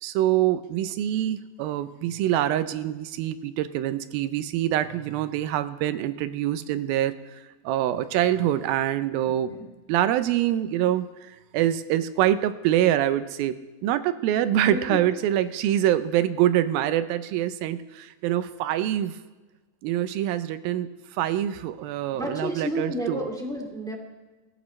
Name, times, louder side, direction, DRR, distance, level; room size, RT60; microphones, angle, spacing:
voice 1, 0.0-7.2 7.6-9.6 9.9-19.2 19.8-23.2, right 12 dB, 85° right, 12 dB, 2.5 m, -25 dB
voice 2, 14.7-15.2 22.1-23.9, equal, ahead, 0 dB, 1.3 m, -31 dB
23.5 x 15.0 x 3.2 m, 1.2 s
omnidirectional pair, 4.2 m